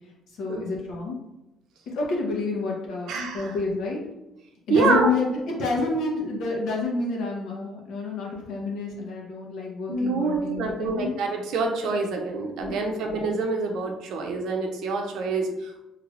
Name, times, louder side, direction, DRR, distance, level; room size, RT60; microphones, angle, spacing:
voice 1, 0.4-1.2 1.9-4.0 4.7-11.1 12.6-12.9, left 3 dB, 65° left, -2 dB, 0.9 m, -29 dB
voice 2, 3.1-3.6 4.7-5.1 9.9-15.8, right 3 dB, 70° right, 2 dB, 0.6 m, -26 dB
3.2 x 3.2 x 2.5 m, 0.95 s
cardioid pair, 165°, 0 cm